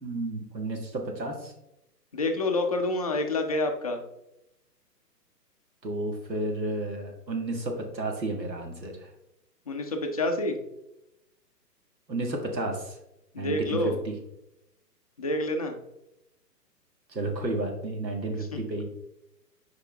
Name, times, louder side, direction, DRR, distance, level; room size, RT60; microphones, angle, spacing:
voice 1, 0.0-1.5 5.8-9.1 12.1-13.0 13.4-14.2 17.1-18.8, right 2 dB, 85° right, 3 dB, 1.8 m, -32 dB
voice 2, 2.1-4.0 9.7-10.6 13.3-14.0 15.2-15.8 18.5-18.6, left 2 dB, 25° left, 3 dB, 0.4 m, -28 dB
6.4 x 4.9 x 3.4 m, 0.85 s
hypercardioid pair, 135°, 50 cm